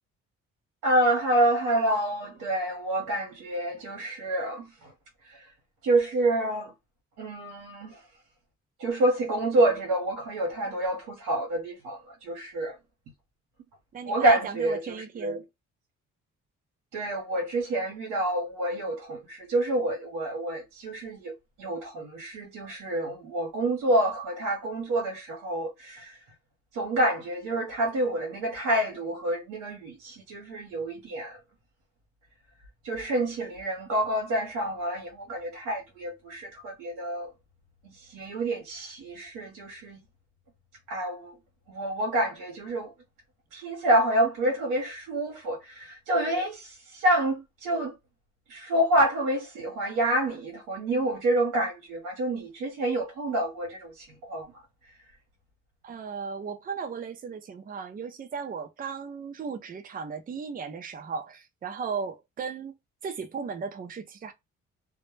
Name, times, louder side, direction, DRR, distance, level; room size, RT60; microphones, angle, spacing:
voice 1, 0.8-4.9 5.3-5.5 5.8-6.7 7.2-8.0 8.8-12.8 14.1-15.4 16.9-26.2 26.7-31.4 32.8-37.3 37.9-40.0 40.9-41.3 41.7-42.9 43.5-47.9 48.5-54.5, right 1 dB, 80° right, 0.8 m, -28 dB
voice 2, 13.9-15.4 55.8-62.7 63.0-64.3, right 6 dB, 30° right, 0.5 m, -36 dB
2.1 x 2.0 x 3.1 m
cardioid pair, 90°, 30 cm